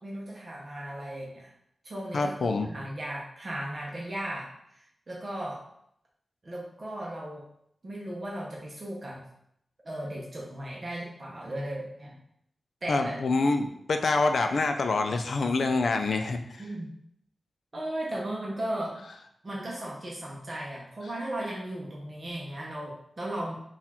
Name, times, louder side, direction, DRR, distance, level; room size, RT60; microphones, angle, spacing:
voice 1, 0.0-1.5 1.8-5.6 6.4-7.4 7.8-9.2 9.8-12.1 12.8-13.2 16.6-16.9 17.7-19.0 19.4-23.6, right 1 dB, 35° right, -4 dB, 0.8 m, -36 dB
voice 2, 2.1-2.7 12.9-16.6, left 3 dB, 65° left, 6 dB, 0.4 m, -26 dB
4.1 x 2.4 x 4.2 m, 0.75 s
wide cardioid pair, 150°, 0 cm